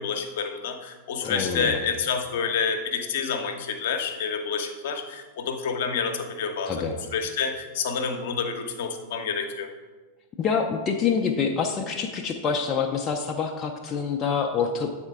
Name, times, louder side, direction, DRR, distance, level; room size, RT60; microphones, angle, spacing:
voice 1, 0.0-9.7, left 6 dB, 55° left, 5 dB, 0.8 m, -28 dB
voice 2, 1.2-1.8 6.7-6.9 10.4-14.9, left 6 dB, 25° left, 2 dB, 0.5 m, -26 dB
8.0 x 4.3 x 3.5 m, 1.3 s
figure-of-eight pair, 90°, 0 cm